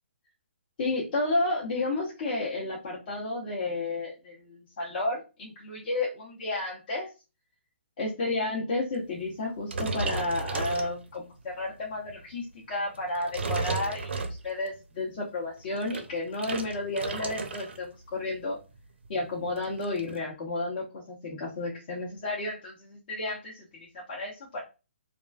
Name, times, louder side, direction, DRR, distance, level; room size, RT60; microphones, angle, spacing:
voice 1, 0.8-7.1 8.0-14.0 14.4-18.6 19.1-24.6, left 2 dB, 45° left, -4 dB, 0.7 m, -32 dB
sound 1, 9.7-11.4 11.9-12.2 12.9-14.7 15.6-17.9 18.1-18.4 18.7-18.8 19.0-20.2, right 3 dB, 65° right, 0.4 m, -34 dB
2.4 x 2.2 x 2.2 m, 0.29 s
figure-of-eight pair, 135°, 7 cm